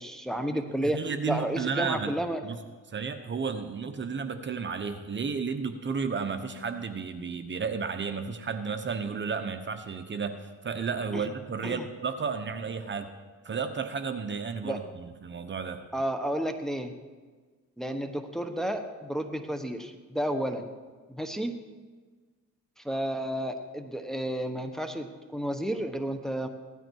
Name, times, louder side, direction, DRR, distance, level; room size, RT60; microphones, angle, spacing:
voice 1, 0.0-2.4 11.1-11.2 11.6-11.8 14.6-14.8 15.9-16.9 17.8-20.7 21.1-21.6 22.8-26.5, right 1 dB, ahead, 5 dB, 1.2 m, -31 dB
voice 2, 0.5-2.1 2.4-2.6 2.9-13.1 13.4-15.8, right 5 dB, 40° right, 8 dB, 1.0 m, -33 dB
16.5 x 12.5 x 4.7 m, 1.4 s
cardioid pair, 90°, 30 cm